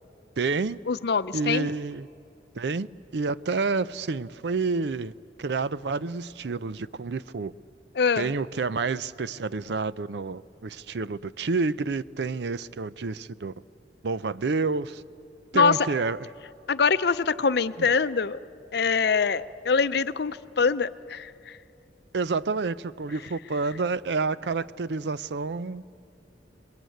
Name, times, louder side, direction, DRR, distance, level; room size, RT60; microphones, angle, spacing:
voice 1, 0.4-0.8 1.3-2.1 2.6-2.9 3.1-5.1 5.4-7.5 8.2-13.5 14.0-15.0 15.5-16.2 17.8-17.9 22.1-25.8, right 4 dB, 70° right, 0.5 m, -29 dB
voice 2, 0.9-1.7 8.0-8.3 15.5-15.8 16.7-18.4 18.7-21.6, left 5 dB, 65° left, 0.6 m, -24 dB
26.5 x 21.5 x 9.2 m
head